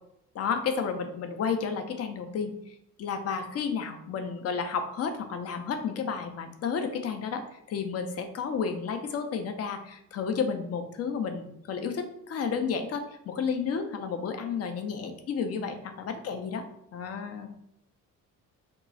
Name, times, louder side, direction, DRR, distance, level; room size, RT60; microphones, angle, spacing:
voice 1, 0.3-7.4 7.7-16.6 16.9-17.5, left 6 dB, 30° left, 6 dB, 0.6 m, -32 dB
2.9 x 2.3 x 3.9 m, 0.76 s
figure-of-eight pair, 45°, 48 cm